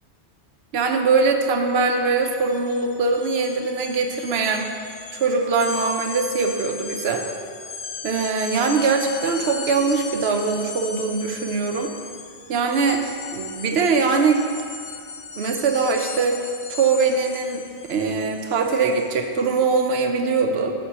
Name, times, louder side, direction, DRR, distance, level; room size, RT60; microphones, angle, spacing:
voice 1, 0.7-4.7 5.1-7.2 8.0-11.9 12.5-13.0 13.3-14.4 15.4-16.4 16.7-20.7, right 4 dB, 70° right, 4 dB, 0.9 m, -22 dB
sound 1, 1.7-1.9 2.2-19.4, left 5 dB, 65° left, 0.3 m, -37 dB
9.5 x 5.4 x 2.9 m, 2.4 s
omnidirectional pair, 1.1 m